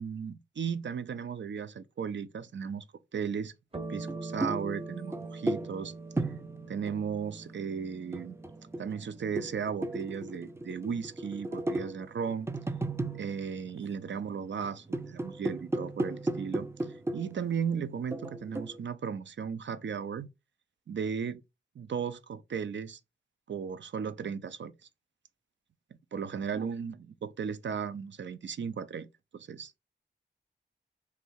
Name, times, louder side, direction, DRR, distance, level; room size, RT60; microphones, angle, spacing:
voice 1, 0.0-2.9 3.1-3.5 3.9-5.9 6.7-8.4 8.8-12.5 13.1-16.7 17.1-20.3 20.9-21.4 21.8-23.0 23.5-24.7 26.1-29.1 29.3-29.7, right 7 dB, 70° right, 0.5 m, -35 dB
sound 1, 3.7-12.6, right 3 dB, 30° right, 0.8 m, -45 dB
sound 2, 4.0-7.4 8.0-14.2 14.6-17.5 18.1-18.8, right 2 dB, 15° right, 0.3 m, -36 dB
3.3 x 2.7 x 4.5 m
cardioid pair, 55°, 20 cm